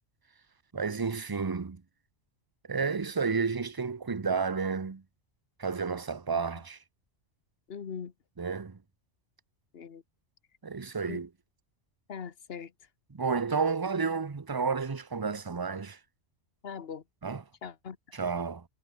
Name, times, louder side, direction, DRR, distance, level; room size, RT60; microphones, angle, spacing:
voice 1, 0.7-1.8 2.7-5.0 5.6-6.8 8.4-8.8 10.6-11.3 13.1-16.0 17.2-17.4 18.1-18.6, right 5 dB, 25° right, 0.6 m, -31 dB
voice 2, 7.7-8.1 9.7-10.0 11.1-11.2 12.1-12.7 16.6-17.0 17.6-18.0, left 6 dB, 55° left, 1.4 m, -40 dB
omnidirectional pair, 1.2 m